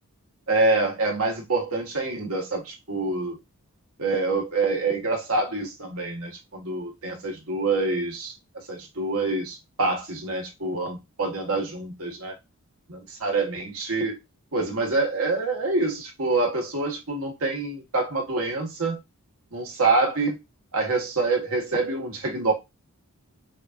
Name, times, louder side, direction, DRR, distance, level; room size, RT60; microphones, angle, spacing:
voice 1, 0.5-3.4 4.0-8.3 8.7-12.3 12.9-14.2 14.5-19.0 19.5-20.4 20.7-22.5, right 3 dB, 70° right, 1.4 m, -26 dB
6.4 x 2.6 x 2.3 m
head